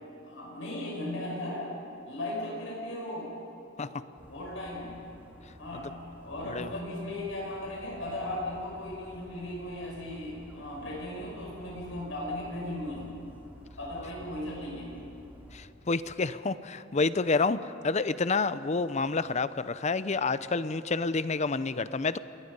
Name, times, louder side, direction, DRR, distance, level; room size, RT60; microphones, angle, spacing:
voice 1, 0.2-1.7 2.1-3.3 3.8-5.0 5.6-5.9 6.2-13.1 13.8-14.9, left 1 dB, 75° left, -3 dB, 6.0 m, -37 dB
Dog, 4.2-15.7, equal, 10° right, 2.9 m, -52 dB
voice 2, 15.5-17.6 17.8-22.2, left 4 dB, 35° left, 14 dB, 0.6 m, -28 dB
29.0 x 21.0 x 5.5 m, 2.7 s
head